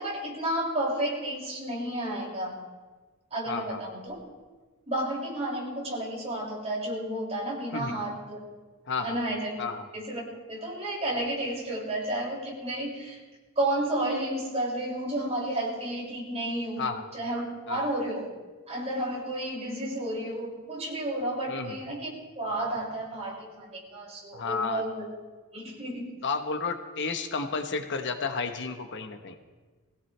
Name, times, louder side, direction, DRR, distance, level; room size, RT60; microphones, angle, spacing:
voice 1, 0.0-2.6 3.3-4.1 4.9-8.4 9.0-9.5 9.9-13.2 13.6-16.8 17.1-18.3 18.7-22.1 22.4-25.1 25.5-26.1, right 1 dB, 30° right, -4 dB, 5.9 m, -31 dB
voice 2, 3.5-3.8 7.7-8.0 8.9-9.2 9.6-9.8 16.8-17.0 17.7-17.9 21.5-21.8 24.3-24.8 26.2-29.4, left 4 dB, 60° left, 6 dB, 1.1 m, -32 dB
22.0 x 17.0 x 3.3 m, 1.3 s
head